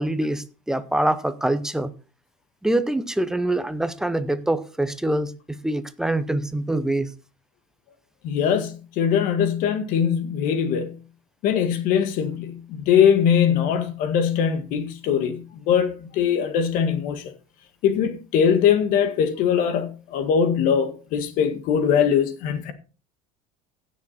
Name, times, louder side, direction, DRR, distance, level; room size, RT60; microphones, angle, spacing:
voice 1, 0.0-1.9 2.6-7.1, right 1 dB, 5° right, 0.7 m, -25 dB
voice 2, 8.2-11.0 11.4-17.3 17.8-22.7, left 8 dB, 55° left, 1.7 m, -21 dB
16.0 x 6.5 x 4.2 m
cardioid pair, 145°, 17 cm